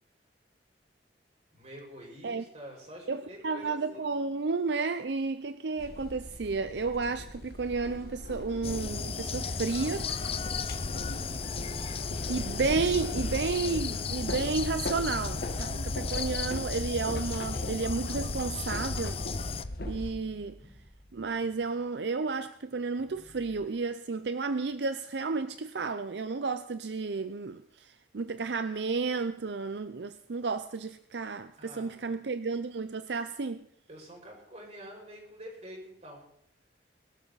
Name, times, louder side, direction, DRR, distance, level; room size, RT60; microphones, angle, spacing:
voice 1, 1.5-4.1 10.7-11.2 12.9-13.7 31.6-32.1 33.9-36.3, equal, 40° right, 6.0 m, -48 dB
voice 2, 3.1-10.1 12.3-19.2 19.8-20.6 21.1-33.6, right 4 dB, 75° right, 0.6 m, -32 dB
sound 1, 5.8-20.1, left 1 dB, 60° left, 1.4 m, -39 dB
sound 2, 8.6-19.6, left 5 dB, 35° left, 0.6 m, -35 dB
sound 3, 19.2-22.2 22.7-23.7, equal, 5° right, 3.8 m, -58 dB
22.0 x 12.5 x 4.1 m
head